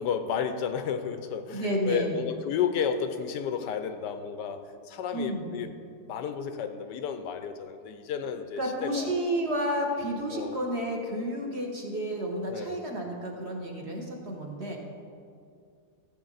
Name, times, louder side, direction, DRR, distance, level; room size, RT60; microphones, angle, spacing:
voice 1, 0.0-5.7 6.1-9.1 10.3-10.6 12.5-12.8, left 7 dB, 80° left, 9 dB, 1.3 m, -32 dB
voice 2, 1.5-2.1 5.1-5.5 8.6-14.8, right 1 dB, 40° right, 0 dB, 1.4 m, -31 dB
15.0 x 7.2 x 4.0 m, 2.3 s
omnidirectional pair, 1.9 m